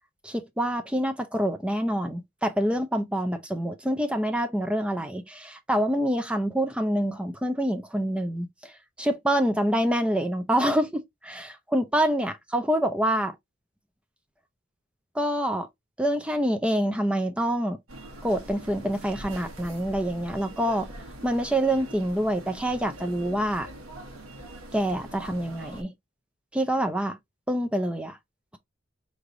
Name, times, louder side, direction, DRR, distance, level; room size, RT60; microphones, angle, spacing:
voice 1, 0.2-8.7 9.0-13.3 15.1-15.7 16.0-17.8 18.2-20.9 21.2-23.7 24.7-25.9 26.5-27.2 27.5-28.2, right 1 dB, 5° right, 0.4 m, -26 dB
sound 1, 17.9-25.8, right 1 dB, 90° right, 1.4 m, -43 dB
4.8 x 3.2 x 2.5 m
head